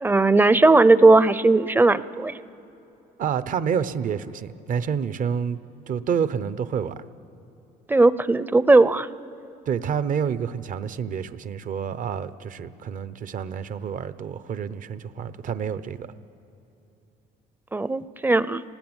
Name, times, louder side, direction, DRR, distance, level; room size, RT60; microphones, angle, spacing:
voice 1, 0.0-2.4 7.9-9.1 17.7-18.6, right 2 dB, 10° right, 0.6 m, -17 dB
voice 2, 3.2-5.6 5.9-7.0 9.7-16.1, right 7 dB, 50° right, 0.9 m, -28 dB
29.0 x 19.5 x 9.0 m
cardioid pair, 110°, 17 cm